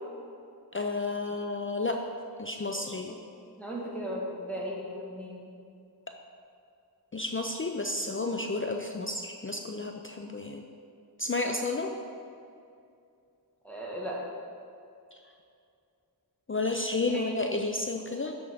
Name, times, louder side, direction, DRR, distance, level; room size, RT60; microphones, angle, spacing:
voice 1, 0.7-2.0 2.4-3.1 7.1-10.6 11.2-12.0 15.1-15.2 16.5-18.3, left 2 dB, 35° left, 4 dB, 0.5 m, -31 dB
voice 2, 3.6-5.5 13.6-14.2 17.1-17.3, equal, 5° left, -5 dB, 1.9 m, -37 dB
11.5 x 4.0 x 4.8 m, 2.5 s
wide cardioid pair, 45°, 39 cm